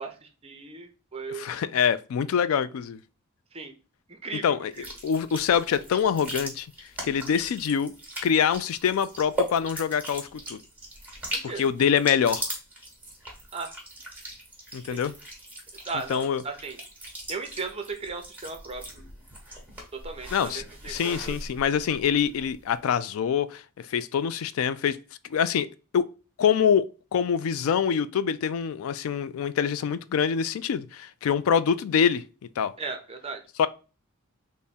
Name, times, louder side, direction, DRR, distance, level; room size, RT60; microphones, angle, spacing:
voice 1, 0.0-1.6 3.5-3.7 4.1-4.9 11.3-11.7 13.5-13.7 14.9-15.0 15.7-16.8 17.3-18.8 19.9-21.4 32.8-33.4, right 4 dB, 30° right, 0.6 m, -37 dB
voice 2, 1.3-3.0 4.4-6.7 7.0-7.9 8.2-10.6 11.6-12.5 14.7-15.1 16.1-16.4 20.3-25.0 25.3-25.7 25.9-26.1 26.4-26.8 27.1-32.2 32.6-32.7 33.6-33.7, left 7 dB, 70° left, 0.3 m, -25 dB
sound 1, 4.7-22.6, right 1 dB, 10° right, 1.1 m, -39 dB
3.5 x 2.1 x 4.0 m
head